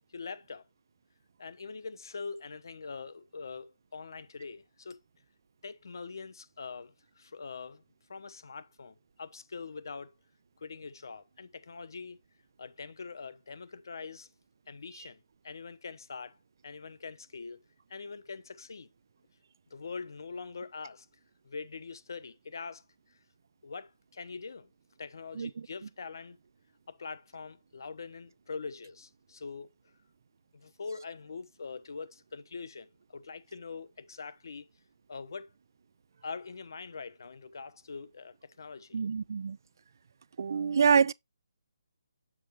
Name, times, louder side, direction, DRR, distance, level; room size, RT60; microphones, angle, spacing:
voice 1, 0.1-0.7 1.4-5.0 5.6-7.8 8.1-10.1 10.6-12.2 12.6-14.3 14.7-16.4 16.6-17.6 17.9-18.9 19.7-21.1 21.4-22.8 23.1-23.2 23.6-24.7 25.0-26.4 26.9-29.7 30.5-34.7 35.1-35.5 36.2-39.0, left 4 dB, 70° left, 1.0 m, -43 dB
voice 2, 38.9-39.6 40.4-41.1, right 6 dB, 60° right, 0.3 m, -26 dB
7.3 x 6.4 x 2.9 m
hypercardioid pair, 155°, 2 cm